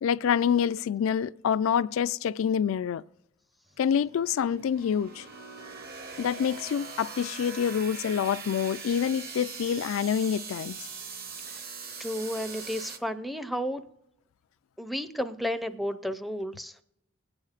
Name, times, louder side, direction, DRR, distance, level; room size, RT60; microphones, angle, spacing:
voice 1, 0.0-3.0 3.8-5.3 6.2-10.8, left 8 dB, 90° left, 0.3 m, -27 dB
sound 1, 3.7-13.0, right 5 dB, 50° right, 0.9 m, -41 dB
voice 2, 12.0-13.8 14.8-16.8, equal, ahead, 0.4 m, -32 dB
20.5 x 8.8 x 2.4 m
head